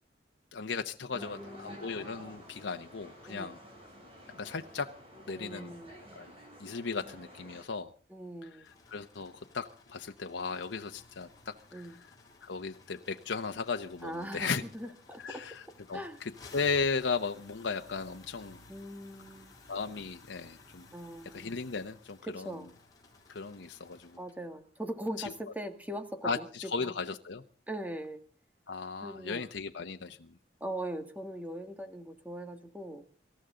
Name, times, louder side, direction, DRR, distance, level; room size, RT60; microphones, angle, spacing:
voice 1, 0.5-3.6 4.3-4.9 5.3-5.7 6.1-6.3 6.6-7.9 8.4-12.0 12.4-14.6 15.2-15.6 15.9-18.6 19.7-20.9 21.3-22.5 23.3-24.2 25.2-25.3 26.2-27.4 28.7-30.3, left 4 dB, 90° left, 6 dB, 0.9 m, -36 dB
voice 2, 1.1-1.9 3.3-3.5 5.3-5.9 8.1-8.7 11.7-11.9 14.0-16.2 18.7-19.5 20.9-21.5 22.3-22.7 24.2-26.5 26.8-26.9 27.7-28.2 29.0-29.4 30.6-33.0, right 1 dB, 10° right, 7 dB, 1.7 m, -41 dB
sound 1, 1.1-7.6, equal, 30° right, 7.4 m, -51 dB
sound 2, 8.6-24.3, left 3 dB, 20° left, 4.9 m, -57 dB
25.5 x 14.0 x 3.8 m, 0.39 s
head